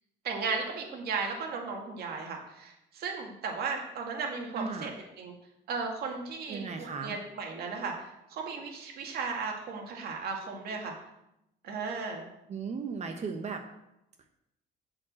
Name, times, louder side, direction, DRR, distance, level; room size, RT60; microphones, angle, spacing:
voice 1, 0.2-4.9 5.2-5.3 5.7-10.9 11.6-12.3, right 4 dB, 70° right, 1 dB, 2.2 m, -35 dB
voice 2, 4.5-4.9 6.5-7.2 12.5-13.6, right 5 dB, 40° right, 5 dB, 1.0 m, -36 dB
8.4 x 5.3 x 7.5 m, 0.85 s
cardioid pair, 110°, 17 cm